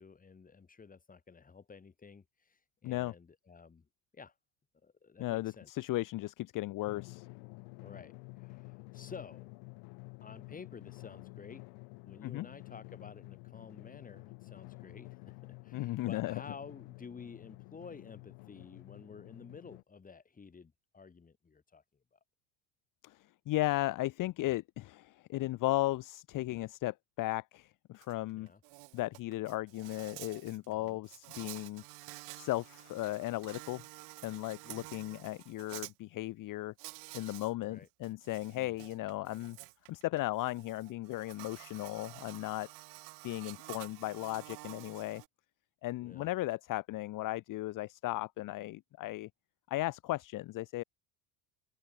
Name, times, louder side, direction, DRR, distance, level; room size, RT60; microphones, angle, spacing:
voice 1, 0.0-3.9 4.1-4.3 4.8-5.7 7.8-9.5 10.2-11.6 12.0-21.8 22.1-22.2 28.3-28.6 30.6-31.0 34.6-34.9 37.6-37.9 46.0-46.3, left 5 dB, 20° left, 7.7 m, -52 dB
voice 2, 5.2-7.3 12.2-12.5 15.7-16.4 23.0-23.2 23.5-28.5 28.9-31.8 32.4-33.8 34.2-36.7 37.1-39.6 39.9-42.7 43.2-45.2 45.8-49.3 49.7-50.8, left 17 dB, 50° left, 1.4 m, -36 dB
Drum, 6.9-19.8, left 35 dB, 75° left, 2.2 m, -50 dB
Insect, 28.0-28.1 28.5-35.9 36.8-37.5 37.9-45.3, right 28 dB, 70° right, 1.4 m, -50 dB
open air
cardioid pair, 135°, 40 cm